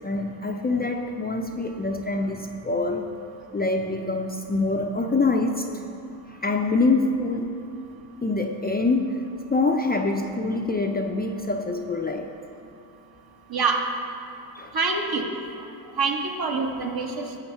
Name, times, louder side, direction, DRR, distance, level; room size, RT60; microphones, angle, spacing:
voice 1, 0.0-3.1 3.5-5.7 6.4-7.5 8.2-9.2 9.5-12.3 14.5-14.7, left 3 dB, 20° left, 3 dB, 0.5 m, -25 dB
voice 2, 13.5-13.8 14.7-15.3 16.0-17.4, right 4 dB, 50° right, 2 dB, 1.4 m, -25 dB
11.5 x 7.0 x 4.5 m, 2.8 s
cardioid pair, 80°, 47 cm